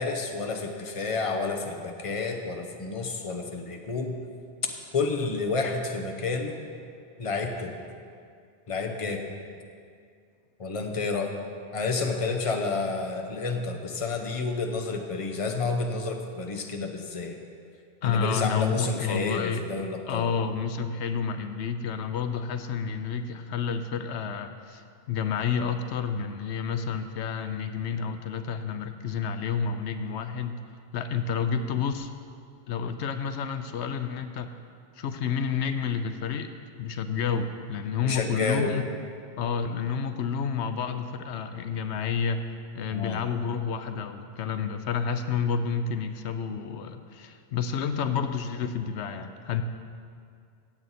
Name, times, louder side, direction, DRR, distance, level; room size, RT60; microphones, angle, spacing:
voice 1, 0.0-4.2 4.9-6.6 7.2-7.8 8.7-9.3 10.6-11.3 11.7-17.4 18.0-20.3 38.0-38.7 42.9-43.2, left 4 dB, 30° left, 3 dB, 0.9 m, -30 dB
voice 2, 18.0-19.6 20.1-30.6 30.9-32.1 32.7-34.5 35.0-36.5 36.8-38.8 39.4-42.4 42.7-49.6, left 6 dB, 85° left, 9 dB, 0.9 m, -30 dB
16.0 x 7.8 x 4.2 m, 2.3 s
omnidirectional pair, 1.1 m